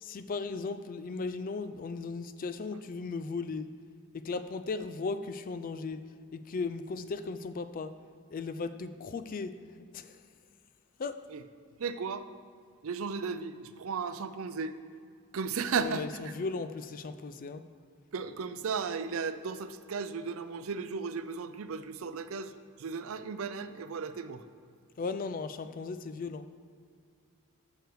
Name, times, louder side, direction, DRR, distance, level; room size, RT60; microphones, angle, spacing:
voice 1, 0.0-3.7 4.1-6.0 6.3-7.9 8.3-10.2 11.0-11.2 15.8-17.6 25.0-26.5, left 4 dB, 40° left, 11 dB, 0.3 m, -36 dB
voice 2, 11.8-12.3 12.8-14.7 15.3-16.4 18.1-22.5 22.8-24.4, right 5 dB, 65° right, 11 dB, 0.5 m, -35 dB
9.4 x 6.5 x 4.7 m, 2.3 s
head